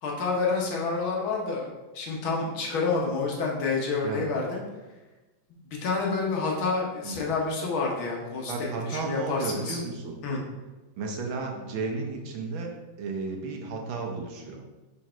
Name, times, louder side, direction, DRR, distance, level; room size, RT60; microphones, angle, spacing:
voice 1, 0.0-4.6 5.7-9.8 10.2-10.4, left 4 dB, 70° left, -1 dB, 1.9 m, -28 dB
voice 2, 8.5-10.2 11.0-14.6, right 4 dB, 70° right, 1 dB, 1.6 m, -33 dB
4.7 x 4.6 x 4.4 m, 1.1 s
omnidirectional pair, 2.3 m